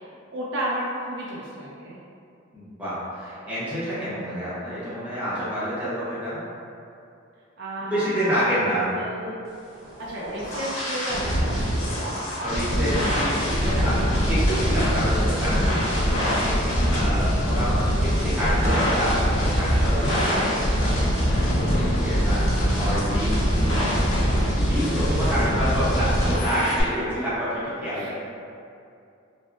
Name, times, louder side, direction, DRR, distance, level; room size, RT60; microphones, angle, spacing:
voice 1, 0.0-2.0 7.6-8.7 8.9-9.5 10.0-12.6 23.2-23.8 27.9-28.1, right 1 dB, 60° right, -5 dB, 0.4 m, -33 dB
voice 2, 2.5-6.4 7.8-8.9 12.4-15.6 16.0-20.9 21.5-22.5 22.8-23.4 24.5-28.1, equal, 5° right, -12 dB, 0.8 m, -28 dB
sound 1, 9.8-26.8, equal, 85° left, 0.8 m, -23 dB
sound 2, 18.7-27.2, equal, 45° left, 0.4 m, -37 dB
3.4 x 2.0 x 2.4 m, 2.5 s
head